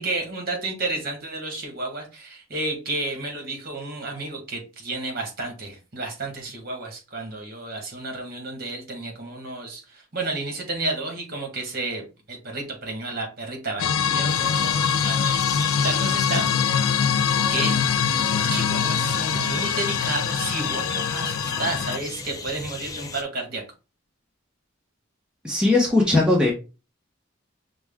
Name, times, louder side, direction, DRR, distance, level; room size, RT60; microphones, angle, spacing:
voice 1, 0.0-9.8 10.1-16.5 17.5-18.0 18.3-23.6, right 2 dB, 50° right, 2 dB, 1.6 m, -31 dB
sound 1, 13.8-22.0, left 7 dB, 85° left, 0.4 m, -23 dB
sound 2, 14.3-23.2, left 3 dB, 15° left, 0.4 m, -36 dB
voice 2, 25.4-26.5, left 2 dB, 5° right, -3 dB, 0.9 m, -19 dB
5.9 x 2.2 x 3.5 m, 0.30 s
head